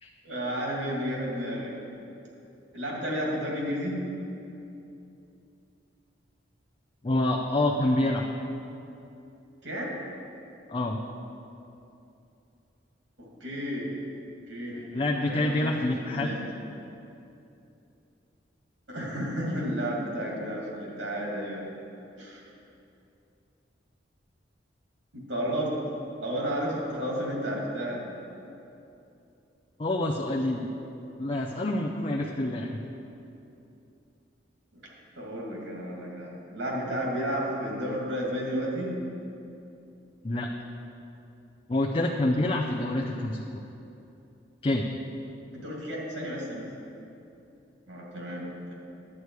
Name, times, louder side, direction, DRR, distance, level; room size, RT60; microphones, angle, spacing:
voice 1, 0.2-1.7 2.7-4.0 9.6-9.9 13.2-13.9 14.5-16.5 18.9-21.6 22.2-22.4 25.1-25.7 26.2-28.0 34.7-34.8 35.2-39.0 45.6-46.7 47.9-48.7, equal, 75° right, -3 dB, 2.4 m, -32 dB
voice 2, 7.0-8.3 10.7-11.0 14.9-16.3 29.8-30.7 31.2-32.8 40.2-40.5 41.7-43.4 44.6-44.9, left 1 dB, 30° left, -1 dB, 0.5 m, -27 dB
11.0 x 8.1 x 4.7 m, 2.7 s
head